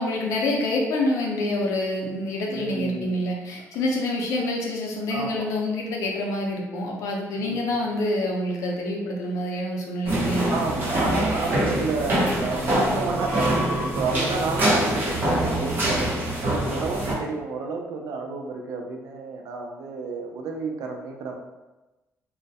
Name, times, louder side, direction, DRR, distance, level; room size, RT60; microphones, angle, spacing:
voice 1, 0.0-10.6, left 1 dB, 80° left, 0 dB, 0.5 m, -27 dB
voice 2, 2.5-3.2 5.1-5.6 7.4-7.8 10.5-16.1 16.4-21.3, right 4 dB, 85° right, 2 dB, 0.4 m, -30 dB
sound 1, 10.1-17.1, right 1 dB, 40° right, 0.8 m, -24 dB
2.2 x 2.0 x 2.7 m, 1.1 s
cardioid pair, 140°, 6 cm